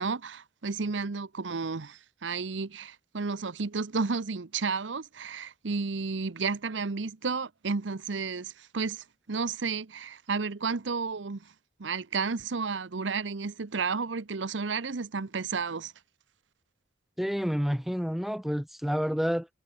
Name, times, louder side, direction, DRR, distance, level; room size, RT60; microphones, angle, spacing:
voice 1, 0.0-11.5 11.8-15.9, right 4 dB, 80° right, 0.8 m, -32 dB
voice 2, 17.2-19.5, equal, ahead, 0.4 m, -29 dB
head